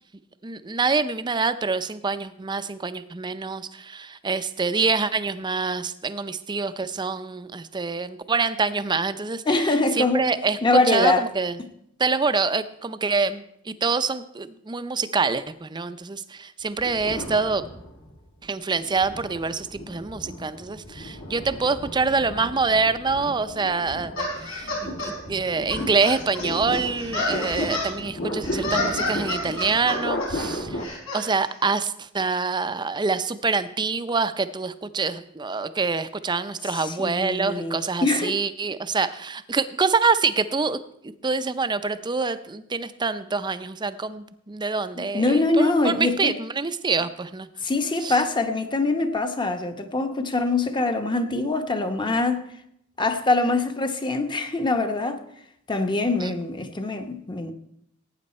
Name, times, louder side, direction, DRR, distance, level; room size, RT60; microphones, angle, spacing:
voice 1, 0.4-9.7 9.9-10.6 10.9-11.6 12.0-17.6 18.4-40.8 41.2-47.5 48.0-48.2 56.2-56.3, right 4 dB, 20° right, 0.5 m, -26 dB
voice 2, 9.5-10.3 10.6-11.2 36.7-38.4 44.9-46.4 47.6-52.5 53.0-55.2 55.7-57.5, left 2 dB, 25° left, 0.9 m, -23 dB
sound 1, 16.8-18.2 18.8-30.8, equal, 65° left, 2.0 m, -34 dB
sound 2, 24.2-25.1 25.7-27.9 28.4-30.3 30.8-31.2, left 2 dB, 85° left, 4.9 m, -29 dB
17.0 x 8.9 x 4.3 m
head